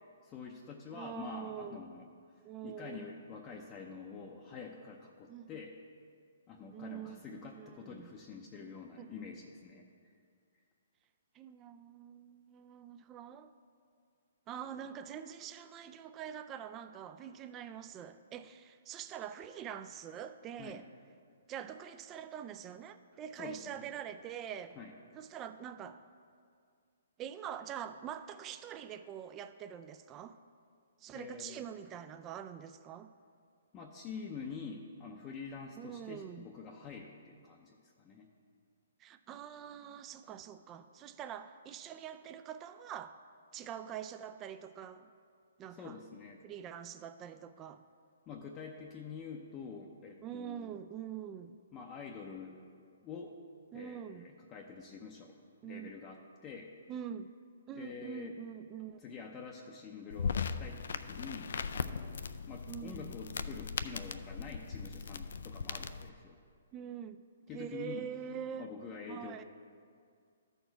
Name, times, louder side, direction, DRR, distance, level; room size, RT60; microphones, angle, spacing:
voice 1, 0.2-2.1 2.6-5.8 6.5-9.9 20.6-20.8 23.4-23.9 24.8-24.9 31.1-31.7 33.7-38.3 45.7-46.4 48.3-50.8 51.7-52.6 53.0-53.3 53.7-55.4 55.6-56.7 57.8-58.3 59.0-66.4 67.5-68.1 68.6-69.4, left 5 dB, 25° left, 0 dB, 0.6 m, -47 dB
voice 2, 0.9-1.8 2.4-3.1 5.3-5.5 6.7-8.1 9.0-9.2 11.3-13.5 14.5-20.9 21.5-24.8 25.1-26.0 27.2-30.4 31.0-33.1 35.8-36.5 39.0-43.2 43.5-45.1 45.6-46.0 46.4-47.8 50.2-51.6 53.7-54.3 55.6-55.9 56.9-57.3 57.7-59.0 62.7-63.1 66.7-67.2 67.5-68.7 69.1-69.4, right 9 dB, 25° right, 10 dB, 0.3 m, -45 dB
sound 1, 60.1-66.1, left 5 dB, 70° left, 0.3 m, -39 dB
13.0 x 4.5 x 4.5 m, 2.2 s
hypercardioid pair, 140°, 0 cm